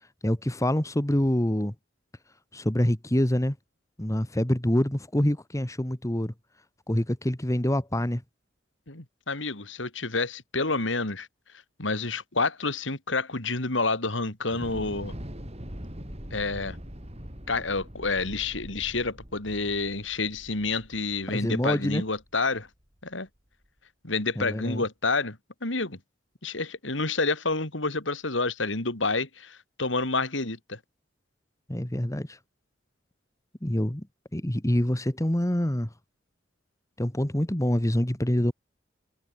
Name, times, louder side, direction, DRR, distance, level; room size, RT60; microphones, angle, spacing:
voice 1, 0.2-1.7 2.5-3.5 4.0-6.3 6.9-8.2 21.3-22.0 24.4-24.8 31.7-32.4 33.6-34.0 34.3-35.9 37.0-38.5, left 1 dB, 15° left, 1.5 m, -26 dB
voice 2, 8.9-11.3 11.8-15.1 16.3-16.8 17.5-22.7 23.0-23.3 24.0-26.0 26.4-30.8, left 3 dB, 75° left, 3.5 m, -29 dB
Thunder / Explosion, 14.5-22.7, equal, 35° right, 6.3 m, -42 dB
head